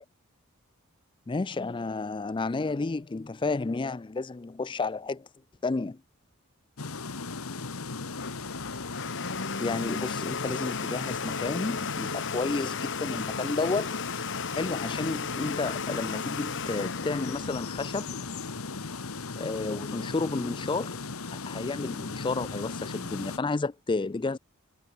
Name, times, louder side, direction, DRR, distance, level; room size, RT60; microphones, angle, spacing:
voice 1, 1.3-5.3 5.6-6.0 9.6-14.0 14.5-18.1 19.4-21.0 21.3-24.4, left 3 dB, 20° left, 0.3 m, -31 dB
sound 1, 6.8-23.4, left 4 dB, 75° left, 1.4 m, -37 dB
Domestic sounds home sounds, 8.0-18.5, left 5 dB, 55° left, 1.6 m, -36 dB
head